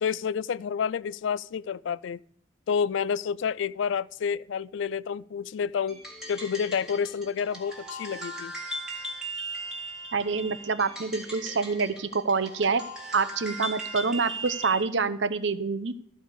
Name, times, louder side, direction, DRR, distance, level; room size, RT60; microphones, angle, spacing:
voice 1, 0.0-2.2 2.7-6.0 6.3-8.5, left 6 dB, 75° left, 0.3 m, -29 dB
sound 1, 5.9-14.9, right 1 dB, 5° right, 2.1 m, -38 dB
voice 2, 10.1-12.8 13.1-15.9, right 4 dB, 70° right, 0.8 m, -27 dB
14.0 x 5.1 x 8.3 m
head